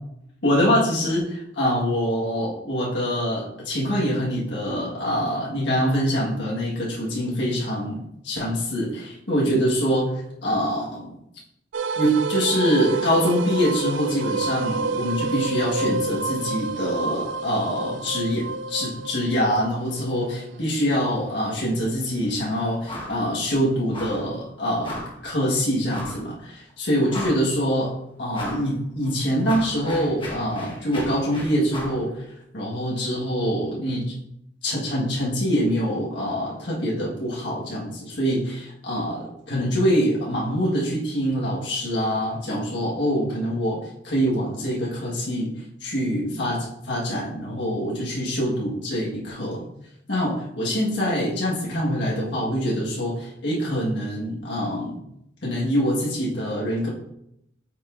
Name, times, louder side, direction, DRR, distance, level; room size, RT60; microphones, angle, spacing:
voice 1, 0.4-11.2 12.0-25.0 25.2-27.9 28.2-32.2 32.5-34.0 34.6-45.5 45.8-49.6 50.1-55.0 55.4-56.9, equal, 65° left, -5 dB, 1.5 m, -25 dB
sound 1, 11.7-22.9, right 4 dB, 90° right, 0.4 m, -29 dB
sound 2, 22.9-23.2 23.5-23.6 23.9-24.3 24.8-25.2 25.9-26.2 26.7-26.8 27.1-27.6 28.3-28.7 29.0-32.0, left 1 dB, 25° left, 1.4 m, -36 dB
8.4 x 5.3 x 2.6 m, 0.79 s
head